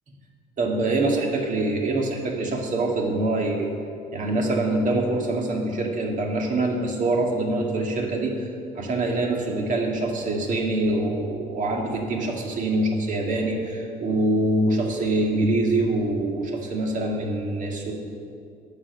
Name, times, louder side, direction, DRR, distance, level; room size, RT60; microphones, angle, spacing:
voice 1, 0.6-3.7 4.1-8.4 8.7-17.9, right 2 dB, 50° right, 0 dB, 1.8 m, -24 dB
9.2 x 6.7 x 6.9 m, 2.5 s
cardioid pair, 110°, 17 cm